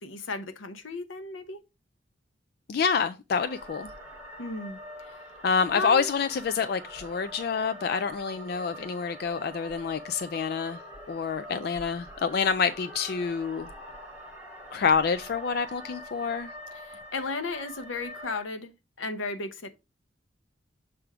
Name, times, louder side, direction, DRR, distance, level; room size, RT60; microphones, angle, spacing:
voice 1, 0.0-1.6 4.4-4.8 5.7-6.1 16.8-18.7 19.0-19.7, left 3 dB, 85° left, 0.8 m, -34 dB
voice 2, 2.7-3.9 5.4-10.8 11.1-13.7 14.7-16.5, left 6 dB, 50° left, 0.3 m, -27 dB
sound 1, 3.4-18.4, equal, 5° right, 1.5 m, -44 dB
6.9 x 3.4 x 4.8 m
head